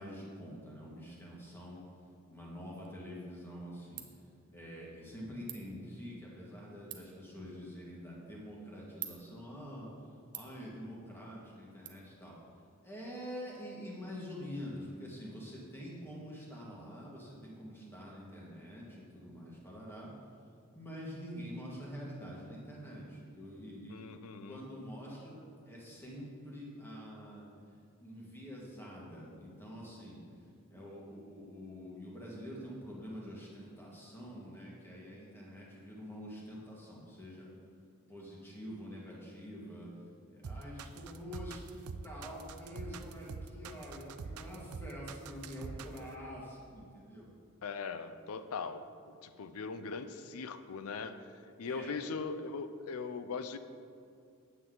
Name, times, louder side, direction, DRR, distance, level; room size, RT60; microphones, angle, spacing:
voice 1, 0.0-1.8 2.3-4.0 4.5-9.9 10.3-12.4 12.8-20.1 20.7-24.2 24.5-27.5 28.0-30.2 30.7-37.5 38.1-39.9 40.3-47.3 51.6-52.0, equal, 10° left, -4 dB, 1.7 m, -46 dB
Ratchet pawl, 2.8-11.9, right 12 dB, 50° right, 0.7 m, -52 dB
voice 2, 23.9-24.6 47.6-51.2 51.6-53.6, left 4 dB, 80° left, 11 dB, 0.5 m, -40 dB
sound 1, 40.4-46.1, right 4 dB, 90° right, 0.5 m, -44 dB
9.3 x 7.9 x 3.9 m, 2.4 s
head